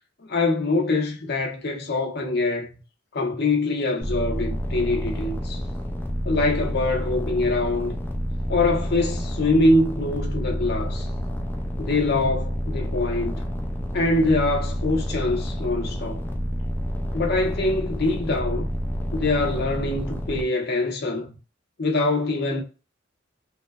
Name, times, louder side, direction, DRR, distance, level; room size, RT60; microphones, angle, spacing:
voice 1, 0.2-2.8 3.1-5.6 6.2-8.0 8.5-11.1 11.8-13.5 13.9-16.2 17.1-18.7 19.1-21.3 21.8-22.6, left 2 dB, 55° left, 0.7 m, -24 dB
sound 1, 4.0-20.4, equal, 10° left, 0.3 m, -29 dB
3.0 x 2.1 x 2.2 m
head